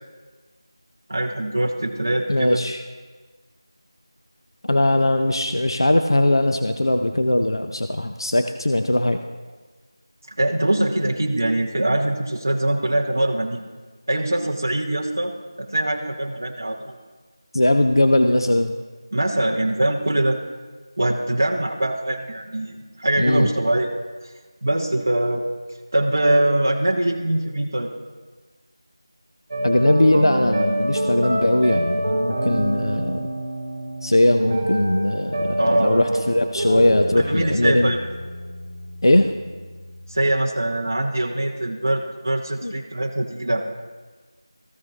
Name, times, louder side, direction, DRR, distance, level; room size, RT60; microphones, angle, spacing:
voice 1, 1.1-2.6 10.4-13.6 14.1-15.3 15.6-16.9 19.1-20.4 21.0-23.9 24.6-25.4 25.9-27.9 35.6-36.2 37.2-38.0 40.1-43.7, right 1 dB, 30° right, -1 dB, 0.6 m, -23 dB
voice 2, 2.3-2.8 4.7-9.2 17.5-18.7 23.2-23.5 29.6-33.3 34.0-38.0 39.0-39.3 42.6-42.7, left 1 dB, 60° left, 6 dB, 0.5 m, -20 dB
sound 1, 29.5-40.2, right 1 dB, 5° right, 2.4 m, -27 dB
14.5 x 5.2 x 3.1 m, 1.3 s
figure-of-eight pair, 180°, 3 cm